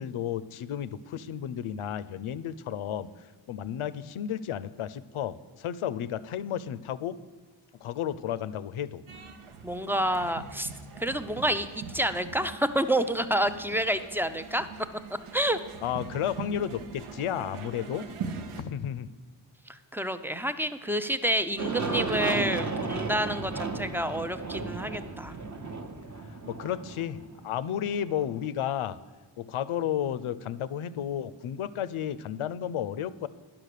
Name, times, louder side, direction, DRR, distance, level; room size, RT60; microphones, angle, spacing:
voice 1, 0.0-3.1 3.5-7.2 7.8-9.0 15.8-18.1 18.5-19.1 26.5-29.0 29.4-33.3, left 10 dB, 80° left, 16 dB, 0.6 m, -32 dB
sound 1, 9.1-18.6, right 5 dB, 85° right, 0.9 m, -42 dB
voice 2, 9.6-10.7 11.0-14.7 15.3-15.6 19.9-25.4, right 1 dB, 5° right, 11 dB, 0.3 m, -28 dB
Aircraft, 21.6-28.3, right 3 dB, 35° right, 0.9 m, -34 dB
10.5 x 6.0 x 6.5 m, 1.4 s
wide cardioid pair, 105°, 49 cm